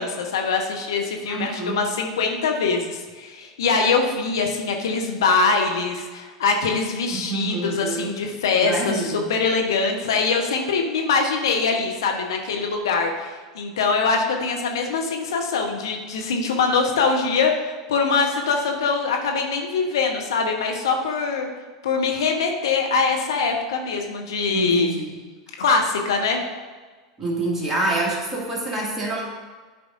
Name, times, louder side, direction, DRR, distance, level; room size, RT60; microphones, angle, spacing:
voice 1, 0.0-21.5 21.8-24.9 25.6-26.4, left 4 dB, 65° left, 2 dB, 0.9 m, -23 dB
voice 2, 1.2-1.8 7.1-8.1 8.6-9.3 24.5-25.2 27.2-29.2, right 2 dB, 15° right, -3 dB, 2.1 m, -27 dB
11.0 x 5.0 x 2.5 m, 1.4 s
figure-of-eight pair, 85°, 2 cm